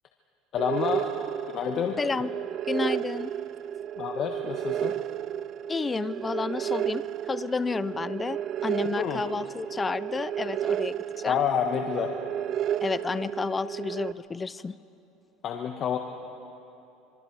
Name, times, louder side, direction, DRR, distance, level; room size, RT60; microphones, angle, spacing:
voice 1, 0.5-1.1 1.5-2.0 4.0-4.9 8.9-9.2 11.2-12.1 15.4-16.0, left 8 dB, 45° left, 3 dB, 1.3 m, -28 dB
sound 1, 0.6-14.1, right 10 dB, 50° right, 0.4 m, -32 dB
voice 2, 2.0-2.3 2.7-3.3 5.7-11.4 12.8-14.8, left 4 dB, 20° left, 16 dB, 0.5 m, -31 dB
26.5 x 23.5 x 4.7 m, 2.9 s
supercardioid pair, 120°, 0 cm